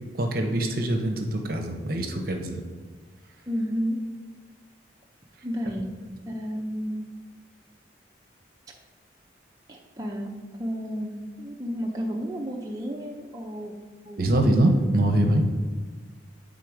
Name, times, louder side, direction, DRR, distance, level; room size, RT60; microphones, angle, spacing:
voice 1, 0.1-2.6 14.2-15.4, right 1 dB, 50° right, 3 dB, 0.8 m, -23 dB
voice 2, 3.5-4.0 5.4-5.9 6.3-7.0 9.7-10.3 10.6-13.7 14.0-14.2, equal, 20° right, -2 dB, 0.6 m, -31 dB
8.4 x 3.8 x 4.9 m, 1.5 s
head